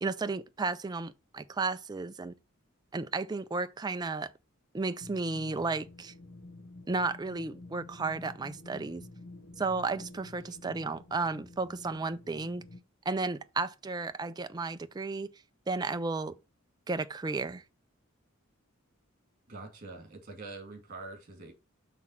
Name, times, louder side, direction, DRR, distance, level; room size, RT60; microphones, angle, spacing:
voice 1, 0.0-2.3 2.9-4.3 4.7-6.1 6.9-9.0 9.6-12.6 13.1-15.3 15.7-16.4 16.9-17.6, right 3 dB, 20° right, 0.4 m, -33 dB
sound 1, 5.0-12.8, left 2 dB, 80° left, 1.0 m, -49 dB
voice 2, 19.5-21.5, right 3 dB, 40° right, 2.4 m, -45 dB
6.1 x 3.6 x 5.7 m
head